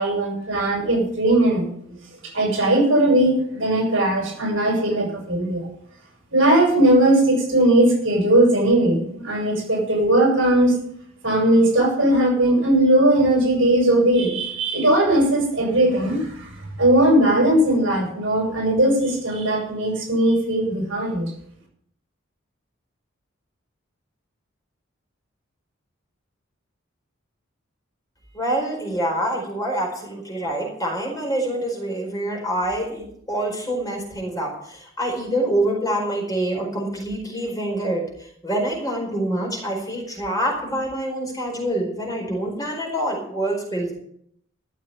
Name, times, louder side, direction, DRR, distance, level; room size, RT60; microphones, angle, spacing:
voice 1, 0.0-2.0 2.3-5.6 6.3-10.8 11.2-16.5 16.8-21.3, right 1 dB, 65° right, 1 dB, 6.5 m, -19 dB
voice 2, 28.3-43.9, right 1 dB, 20° left, -1 dB, 4.6 m, -26 dB
13.5 x 7.4 x 9.1 m, 0.69 s
head